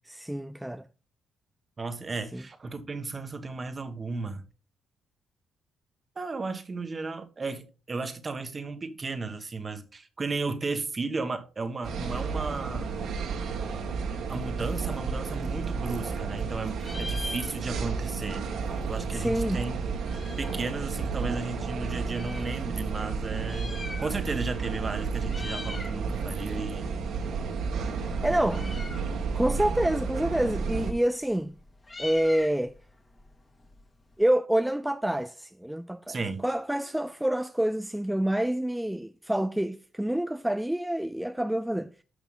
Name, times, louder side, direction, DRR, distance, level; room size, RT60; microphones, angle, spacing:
voice 1, 0.1-0.8 2.3-2.4 19.1-19.6 28.0-28.7 29.3-31.5 32.0-32.7 34.2-36.1 36.4-41.9, right 1 dB, 5° right, 0.4 m, -27 dB
voice 2, 1.8-4.4 6.1-12.9 14.3-18.5 18.8-19.8 20.4-26.9 28.3-28.8 36.1-36.4, right 3 dB, 30° right, 1.5 m, -34 dB
sound 1, 11.8-30.9, right 5 dB, 75° right, 2.2 m, -32 dB
Meow, 15.5-16.5 16.7-18.0 18.3-18.4 18.6-20.7 21.3-22.5 23.3-24.5 24.7-25.0 25.2-26.0 26.4-34.2, left 2 dB, 25° left, 2.2 m, -43 dB
11.5 x 6.0 x 3.8 m
cardioid pair, 90°, 0 cm